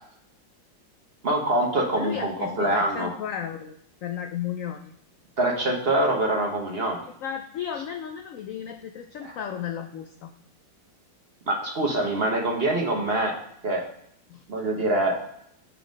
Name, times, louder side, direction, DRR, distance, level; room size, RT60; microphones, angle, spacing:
voice 1, 1.2-3.1 5.4-7.0 9.2-9.3 11.5-13.4 13.6-13.8 14.5-15.2, right 1 dB, 40° right, 0 dB, 1.0 m, -24 dB
voice 2, 2.0-3.8 4.0-4.9 7.0-10.3 14.3-14.4, left 9 dB, 85° left, 6 dB, 0.7 m, -34 dB
7.1 x 3.9 x 5.2 m, 0.73 s
omnidirectional pair, 1.9 m